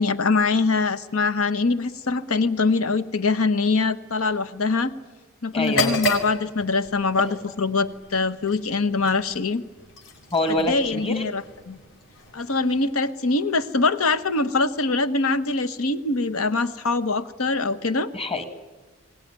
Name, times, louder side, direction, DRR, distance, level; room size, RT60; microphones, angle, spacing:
voice 1, 0.0-4.9 5.4-9.6 10.6-11.8 12.3-18.1, left 3 dB, 90° left, 12 dB, 1.1 m, -23 dB
voice 2, 5.5-5.9 10.3-11.2 18.1-18.4, left 2 dB, 25° left, 8 dB, 1.7 m, -25 dB
sound 1, 5.6-13.4, left 1 dB, 60° left, 4.4 m, -33 dB
22.0 x 18.5 x 9.7 m, 1.4 s
head